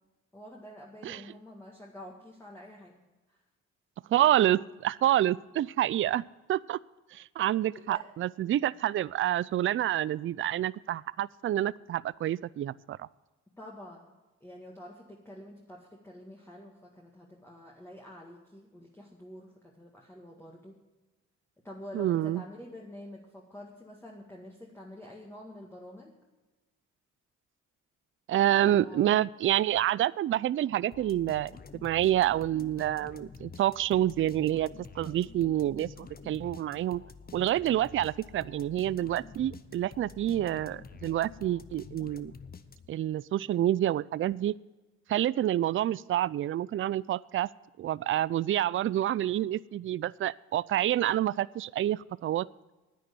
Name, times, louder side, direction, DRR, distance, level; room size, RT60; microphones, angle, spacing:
voice 1, 0.3-3.0 3.3-3.4 7.7-8.1 13.6-14.1 14.4-20.8 21.6-26.2 28.6-29.2, left 1 dB, 10° left, -2 dB, 1.9 m, -47 dB
voice 2, 4.1-6.2 6.5-6.8 7.1-13.1 21.9-22.4 28.3-31.5 31.8-34.7 35.0-37.0 37.3-42.3 42.9-44.6 45.1-47.5 47.8-52.5, right 12 dB, 45° right, 20 dB, 0.4 m, -28 dB
sound 1, 30.9-43.1, left 5 dB, 30° left, 0.9 m, -48 dB
10.0 x 9.4 x 6.8 m, 1.1 s
cardioid pair, 90°, 30 cm